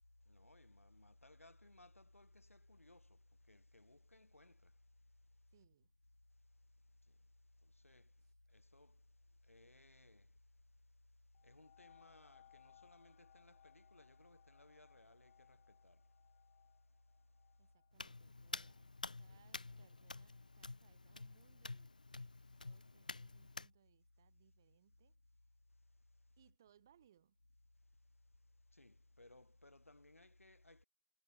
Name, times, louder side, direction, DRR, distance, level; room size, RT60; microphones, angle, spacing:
voice 1, 0.3-3.2 3.5-4.7 7.8-8.1 8.5-9.0 9.5-10.3 11.4-16.0 28.7-30.8, left 2 dB, 70° left, 5.2 m, -63 dB
voice 2, 5.5-5.9 8.2-8.3 17.6-18.9 19.2-21.9 22.6-25.2 26.4-27.4, right 10 dB, 15° right, 3.0 m, -72 dB
sound 1, 11.3-20.6 21.2-21.3, left 12 dB, 10° left, 1.3 m, -70 dB
Hands, 17.9-23.7, left 3 dB, 35° left, 0.4 m, -50 dB
figure-of-eight pair, 170°, 8 cm